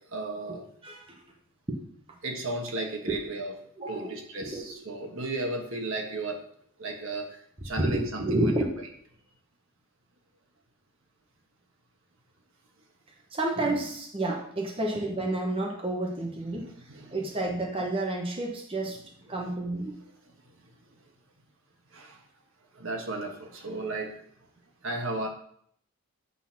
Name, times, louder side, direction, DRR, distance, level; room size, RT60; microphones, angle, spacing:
voice 1, 0.1-0.6 2.2-3.5 3.9-6.4 6.8-8.6 16.9-17.2 18.8-18.9 20.6-21.0 21.9-22.2 22.7-24.1 24.8-25.3, right 2 dB, 60° right, 1 dB, 1.4 m, -34 dB
voice 2, 0.8-1.2 1.7-1.8 3.1-3.2 3.8-4.1 4.4-4.7 7.8-8.7 13.3-16.7 17.1-19.0 19.3-20.0, right 1 dB, 25° right, -1 dB, 0.9 m, -30 dB
8.4 x 4.0 x 5.8 m, 0.65 s
head